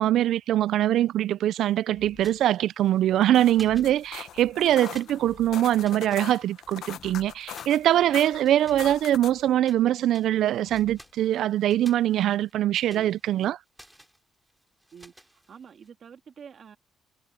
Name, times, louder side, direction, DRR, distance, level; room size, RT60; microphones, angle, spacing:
voice 1, 0.0-13.6, right 12 dB, 80° right, 0.4 m, -23 dB
sound 1, 1.9-2.5 3.6-4.2 5.2-5.8 6.9-7.6 8.6-9.3 10.6-11.2, left 7 dB, 55° left, 2.5 m, -52 dB
sound 2, 2.1-3.2 3.5-4.5 4.8-6.9 7.5-9.8 10.1-15.9, equal, 5° right, 3.3 m, -54 dB
sound 3, 3.1-9.5, left 10 dB, 75° left, 0.9 m, -42 dB
voice 2, 14.9-16.8, right 7 dB, 55° right, 2.0 m, -48 dB
cardioid pair, 90°, 0 cm